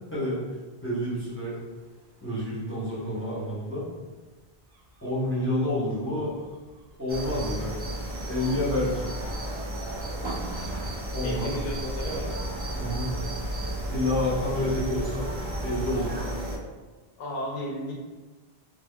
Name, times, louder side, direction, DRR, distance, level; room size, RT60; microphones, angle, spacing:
voice 1, 0.8-1.5 2.2-3.8 5.0-6.3 7.0-7.8 8.3-9.1 11.1-11.6 12.8-13.1 13.9-15.3 15.6-16.2, left 1 dB, 15° left, -9 dB, 0.7 m, -28 dB
Gull seagull / Waves surf / Siren, 1.4-16.1, equal, 70° right, 0.8 m, -44 dB
sound 1, 7.1-16.6, right 1 dB, 40° right, 0.4 m, -33 dB
voice 2, 11.2-12.3 14.5-14.7 17.2-17.9, left 1 dB, 70° left, -3 dB, 0.7 m, -34 dB
3.5 x 2.0 x 2.2 m, 1.3 s
omnidirectional pair, 1.1 m